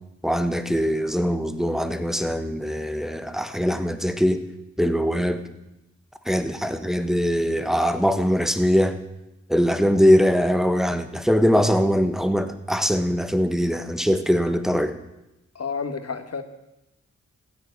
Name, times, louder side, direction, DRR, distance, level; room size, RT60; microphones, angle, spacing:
voice 1, 0.2-4.4 4.8-5.4 6.3-8.9 9.5-14.9, equal, ahead, 9 dB, 1.3 m, -22 dB
voice 2, 15.5-16.4, left 5 dB, 55° left, 8 dB, 1.7 m, -30 dB
15.5 x 9.9 x 8.3 m, 0.93 s
wide cardioid pair, 85°, 29 cm